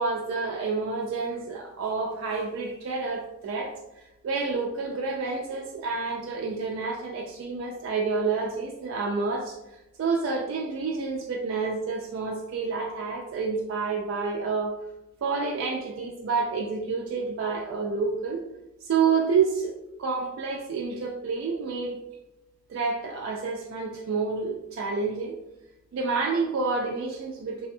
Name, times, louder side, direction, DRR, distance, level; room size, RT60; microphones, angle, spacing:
voice 1, 0.0-3.8 4.2-14.8 15.2-18.4 18.8-22.0 22.7-25.3 25.9-27.7, right 4 dB, 75° right, 0 dB, 0.3 m, -29 dB
2.6 x 2.2 x 2.6 m, 0.91 s
head